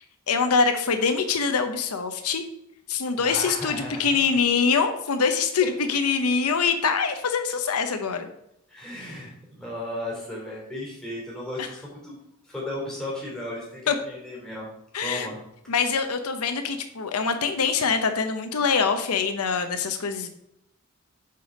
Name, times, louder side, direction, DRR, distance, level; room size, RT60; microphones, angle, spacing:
voice 1, 0.3-2.4 2.9-8.3 11.6-11.7 13.9-14.0 14.9-15.3 15.7-20.3, left 5 dB, 90° left, 7 dB, 0.8 m, -24 dB
voice 2, 3.2-4.1 8.7-9.3 9.6-12.2 12.4-14.7 15.0-15.4, left 1 dB, 5° left, -6 dB, 3.2 m, -35 dB
6.7 x 5.2 x 5.1 m, 0.80 s
head